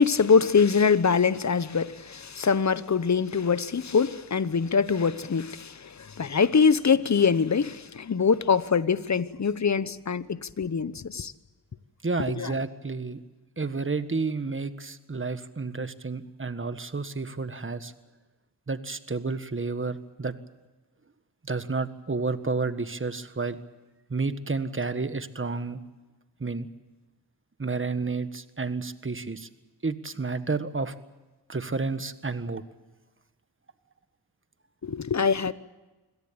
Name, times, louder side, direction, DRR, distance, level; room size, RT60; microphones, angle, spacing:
voice 1, 0.0-11.3 12.4-12.5 34.8-35.5, left 5 dB, 45° left, 1.1 m, -23 dB
voice 2, 12.0-13.2 13.6-17.9 18.7-20.3 21.4-23.6 24.1-25.8 26.4-26.7 27.6-29.5 29.8-30.9 31.5-32.6, right 4 dB, 30° right, 1.6 m, -30 dB
25.5 x 17.5 x 8.8 m
cardioid pair, 55°, 40 cm